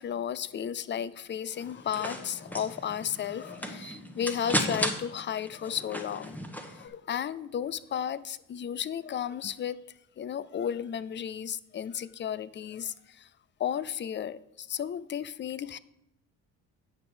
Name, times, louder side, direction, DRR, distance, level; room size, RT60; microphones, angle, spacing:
voice 1, 0.0-6.4 6.7-9.8 10.2-13.3 13.6-15.8, left 9 dB, 35° left, 0.4 m, -34 dB
sound 1, 1.6-6.9, equal, 5° left, 1.2 m, -35 dB
9.0 x 6.1 x 5.0 m
supercardioid pair, 75°, 34 cm